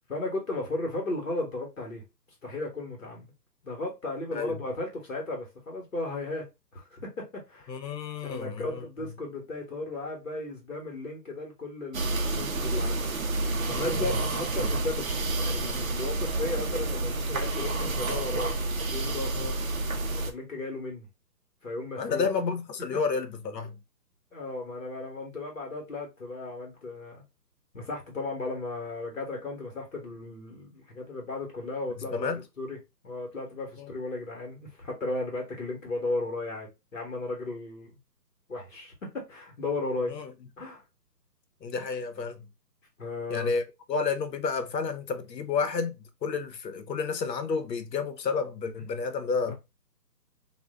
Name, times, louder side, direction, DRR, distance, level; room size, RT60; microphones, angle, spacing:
voice 1, 0.1-2.0 2.4-3.3 3.6-6.5 6.7-7.7 8.2-13.0 13.6-18.5 18.9-19.4 20.1-21.1 21.6-22.3 24.3-27.2 27.7-32.3 32.6-32.8 33.0-38.0 38.5-40.2 40.6-40.8 43.0-43.5 49.5-49.6, left 2 dB, 50° left, 1.1 m, -35 dB
voice 2, 7.7-8.9 13.7-14.2 19.3-19.5 22.0-23.8 32.1-32.4 33.8-33.9 40.1-40.3 41.6-42.4 43.3-43.6 43.9-46.0 46.2-49.5, left 5 dB, 80° left, 0.8 m, -30 dB
sound 1, 11.9-20.3, right 2 dB, 55° right, 0.5 m, -29 dB
2.4 x 2.1 x 3.4 m
hypercardioid pair, 175°, 49 cm